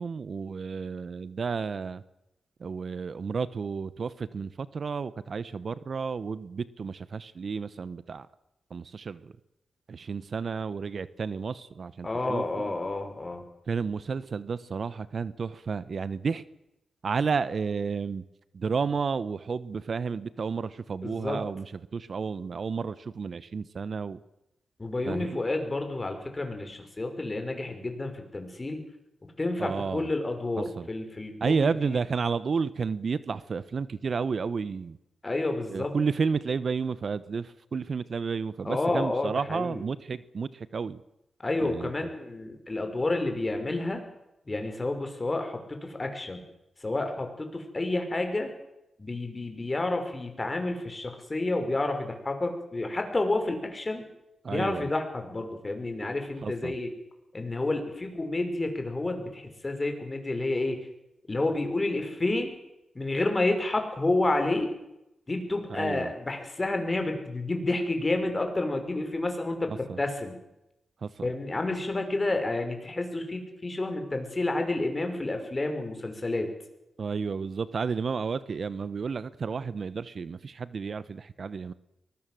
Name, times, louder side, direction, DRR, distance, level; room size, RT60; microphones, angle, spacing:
voice 1, 0.0-2.0 2.6-8.3 8.7-9.3 9.9-12.7 13.7-16.4 17.0-18.2 18.5-21.7 21.9-24.2 25.0-25.3 29.6-30.1 30.8-30.9 31.4-35.0 35.7-41.0 41.6-41.9 54.4-54.9 56.4-56.7 65.7-66.1 69.7-70.0 71.0-71.3 77.0-81.7, right 5 dB, 55° right, 16 dB, 1.0 m, -31 dB
voice 2, 12.0-13.4 21.0-21.4 24.8-28.8 29.4-32.0 35.2-35.9 38.6-39.8 41.4-44.0 44.5-46.4 46.8-48.5 49.0-54.1 54.5-56.9 57.3-60.8 61.3-62.5 62.9-64.7 65.3-69.7 70.0-70.4 71.2-76.5, left 2 dB, 30° left, 5 dB, 5.8 m, -30 dB
24.0 x 20.0 x 7.7 m, 0.89 s
cardioid pair, 70°, 0 cm